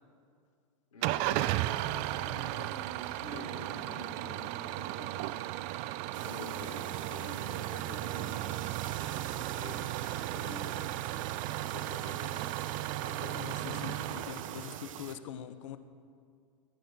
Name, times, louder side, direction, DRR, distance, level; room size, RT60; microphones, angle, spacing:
voice 1, 0.9-5.4 6.2-8.5 9.1-10.8 11.6-12.5 13.0-13.9, left 2 dB, 90° left, -2 dB, 3.4 m, -47 dB
Engine starting / Idling, 1.0-15.2, right 16 dB, 40° right, 0.4 m, -35 dB
sound 1, 6.1-15.2, right 9 dB, 75° right, 0.7 m, -46 dB
voice 2, 13.4-15.8, left 10 dB, 65° left, 11 dB, 0.8 m, -43 dB
18.0 x 10.0 x 3.6 m, 2.2 s
hypercardioid pair, 110°, 17 cm